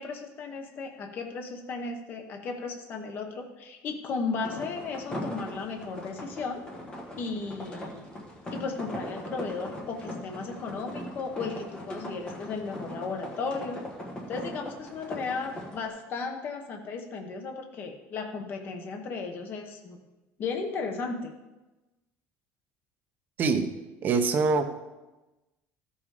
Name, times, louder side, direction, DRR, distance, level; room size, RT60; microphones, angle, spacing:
voice 1, 0.0-6.6 7.2-8.1 8.5-13.8 14.3-20.0 20.4-21.3, left 4 dB, 35° left, 4 dB, 1.0 m, -35 dB
sound 1, 4.4-15.9, equal, 15° left, 1.3 m, -40 dB
voice 2, 23.4-23.7 24.0-24.6, right 4 dB, 30° right, 7 dB, 0.8 m, -24 dB
13.5 x 5.6 x 4.9 m, 1.1 s
cardioid pair, 175°, 6 cm